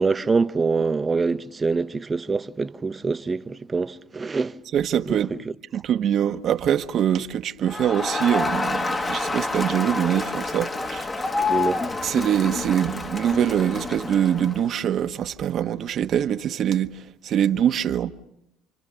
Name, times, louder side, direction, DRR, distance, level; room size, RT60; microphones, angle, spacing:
voice 1, 0.0-4.5 5.1-5.2 11.5-11.8, right 4 dB, 25° right, 0.9 m, -24 dB
voice 2, 4.7-5.3 5.7-11.1 12.0-18.1, right 9 dB, 50° right, 1.1 m, -23 dB
Crowd, 7.7-14.7, left 3 dB, 25° left, 1.4 m, -28 dB
29.5 x 25.5 x 6.9 m
supercardioid pair, 95°, 0 cm